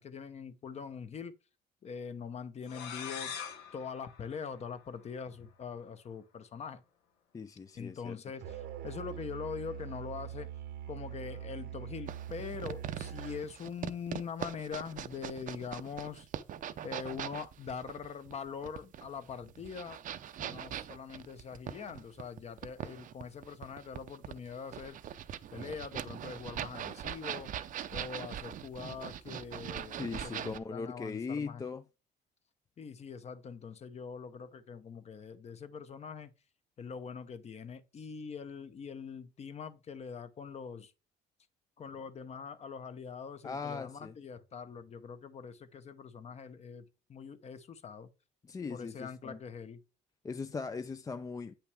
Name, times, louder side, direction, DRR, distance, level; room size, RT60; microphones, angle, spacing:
voice 1, 0.0-1.3 1.8-3.4 3.7-6.8 7.7-10.5 10.9-16.3 16.8-20.0 20.3-25.0 25.5-31.6 32.8-36.3 36.8-40.9 41.8-48.1 48.7-49.8, left 6 dB, 40° left, 0.9 m, -43 dB
sound 1, 2.6-5.2, left 7 dB, 85° left, 1.3 m, -44 dB
voice 2, 7.3-8.2 30.0-31.8 43.4-44.2 48.4-49.4 50.2-51.5, left 4 dB, 20° left, 0.4 m, -39 dB
Musical instrument, 8.4-13.5, right 10 dB, 75° right, 0.9 m, -43 dB
sound 2, 12.1-30.6, right 10 dB, 50° right, 0.6 m, -42 dB
8.5 x 5.8 x 3.4 m
cardioid pair, 110°, 17 cm